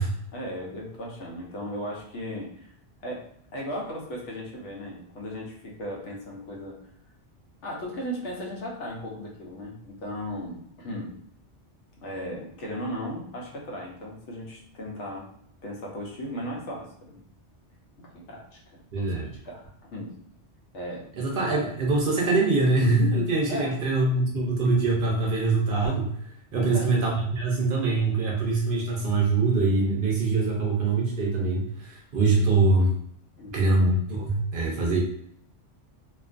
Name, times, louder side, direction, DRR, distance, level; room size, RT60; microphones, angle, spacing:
voice 1, 0.3-2.7 3.0-6.8 7.6-11.2 12.0-15.3 15.6-17.1 18.0-18.6 18.9-20.2 20.7-21.1 23.4-23.8 26.5-26.9 33.4-33.5, equal, 80° left, -2 dB, 1.0 m, -36 dB
voice 2, 18.9-19.3 21.2-26.1 26.5-32.9 33.5-35.0, right 3 dB, 60° right, -2 dB, 0.6 m, -23 dB
2.5 x 2.3 x 2.4 m, 0.69 s
omnidirectional pair, 1.2 m